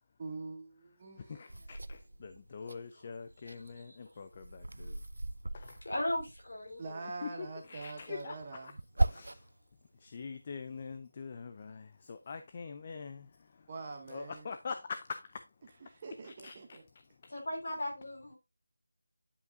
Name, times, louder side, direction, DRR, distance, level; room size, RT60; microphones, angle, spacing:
voice 1, 0.2-1.4 6.8-8.7 13.7-14.5 15.8-16.8, right 3 dB, 20° right, 0.7 m, -44 dB
voice 2, 1.3-5.0 5.5-5.8 7.2-8.7 9.0-9.4 10.0-13.3 14.1-15.4 16.2-16.8, left 5 dB, 20° left, 0.3 m, -44 dB
sound 1, 1.5-2.8 3.2-6.7 7.8-9.6 10.1-11.0, right 2 dB, 80° right, 0.5 m, -38 dB
voice 3, 5.8-7.0 17.3-18.4, left 1 dB, 35° left, 2.8 m, -36 dB
9.6 x 5.3 x 2.5 m
figure-of-eight pair, 180°, 0 cm